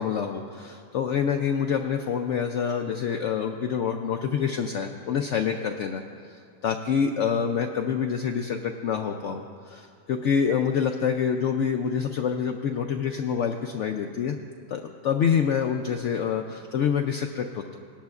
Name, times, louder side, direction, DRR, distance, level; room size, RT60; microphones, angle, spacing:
voice 1, 0.0-6.0 6.3-14.4 14.7-17.8, left 7 dB, 90° left, 4 dB, 0.6 m, -27 dB
18.5 x 11.5 x 2.4 m, 2.3 s
omnidirectional pair, 1.8 m